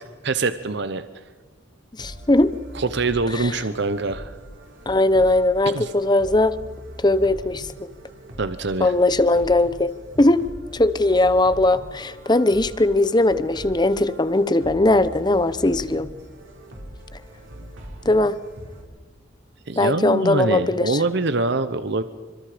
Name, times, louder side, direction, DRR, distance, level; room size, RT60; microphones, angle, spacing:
voice 1, 0.2-1.0 2.7-4.3 5.7-5.9 8.4-8.9 19.7-22.0, right 3 dB, 60° right, 11 dB, 0.9 m, -24 dB
voice 2, 2.0-2.5 3.3-3.6 4.9-6.6 7.0-7.9 8.8-10.5 10.7-16.1 18.0-18.3 19.8-21.0, left 2 dB, 20° left, 14 dB, 0.8 m, -19 dB
sound 1, 2.0-18.8, equal, 80° right, 6.2 m, -41 dB
28.5 x 25.5 x 5.1 m, 1.3 s
head